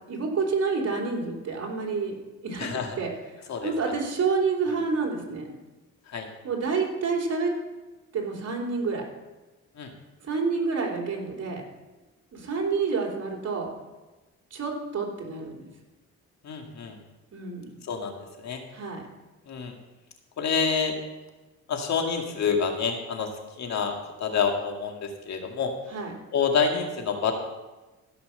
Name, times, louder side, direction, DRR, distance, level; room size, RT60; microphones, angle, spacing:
voice 1, 0.1-2.2 2.4-2.7 3.0-3.1 3.6-5.5 6.4-7.5 8.1-9.1 10.3-11.6 12.3-13.7 14.5-15.7 17.3-17.8 18.7-19.0 25.9-26.1, right 4 dB, 55° right, 0 dB, 3.6 m, -28 dB
voice 2, 2.6-3.0 3.5-3.7 6.1-6.3 9.8-9.9 16.4-17.0 17.8-18.6 19.5-19.8 20.4-21.0 21.7-23.3 23.6-25.7 26.3-27.3, left 6 dB, 65° left, 3 dB, 2.1 m, -27 dB
15.5 x 6.0 x 6.7 m, 1.1 s
cardioid pair, 90°, 30 cm